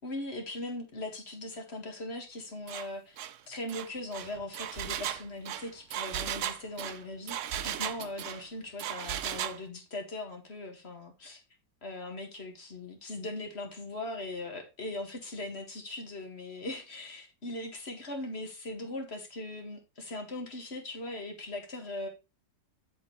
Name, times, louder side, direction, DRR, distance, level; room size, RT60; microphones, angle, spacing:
voice 1, 0.0-11.4 11.8-22.1, left 2 dB, 35° left, 2.1 m, -40 dB
Engine, 2.7-2.9 3.2-3.4 3.7-8.4 8.8-9.6, right 11 dB, 90° right, 0.6 m, -36 dB
8.2 x 8.0 x 3.2 m
omnidirectional pair, 2.0 m